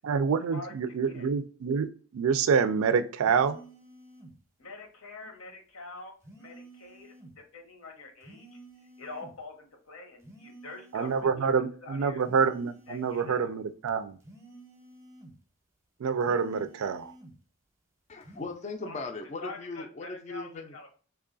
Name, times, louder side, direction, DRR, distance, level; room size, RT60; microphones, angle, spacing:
voice 1, 0.0-1.9 2.1-3.6 10.9-14.2 16.0-17.1, right 6 dB, 75° right, 0.4 m, -27 dB
sound 1, 3.2-4.4 6.2-7.4 8.2-9.4 10.2-11.4 12.2-13.4 14.2-15.4 16.2-17.4 18.2-18.5, right 1 dB, 15° right, 0.7 m, -51 dB
voice 2, 4.6-8.6 9.0-12.2 12.9-13.5 18.8-19.1 19.4-20.9, left 2 dB, 75° left, 0.8 m, -45 dB
voice 3, 18.1-20.7, left 3 dB, 35° left, 0.4 m, -38 dB
3.0 x 2.3 x 3.7 m
head